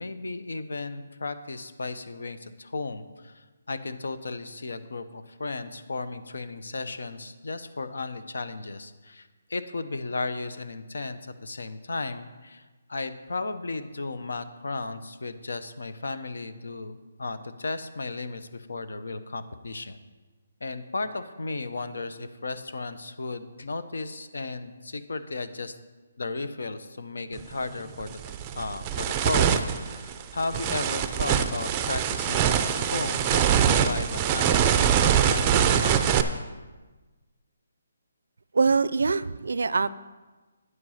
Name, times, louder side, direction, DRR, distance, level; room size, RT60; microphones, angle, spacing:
voice 1, 0.0-12.6 12.9-20.0 20.6-25.8 26.2-28.2 28.5-36.2, left 3 dB, 85° left, 11 dB, 0.9 m, -35 dB
sound 1, 27.4-27.5 28.0-36.2, right 8 dB, 15° right, 0.4 m, -23 dB
voice 2, 38.5-39.9, right 4 dB, 80° right, 18 dB, 0.4 m, -23 dB
9.7 x 7.8 x 5.7 m, 1.3 s
hypercardioid pair, 170°, 0 cm